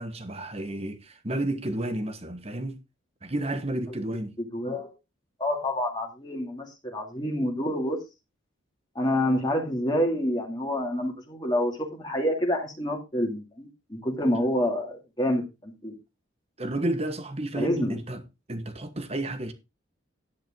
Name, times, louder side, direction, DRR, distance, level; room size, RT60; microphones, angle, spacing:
voice 1, 0.0-2.8 3.2-4.4 16.6-18.2 18.5-19.5, right 1 dB, 30° right, 1.3 m, -31 dB
voice 2, 4.4-4.9 5.4-8.0 8.9-15.9 17.6-17.9, left 1 dB, 20° left, 2.5 m, -28 dB
11.0 x 10.0 x 3.8 m
head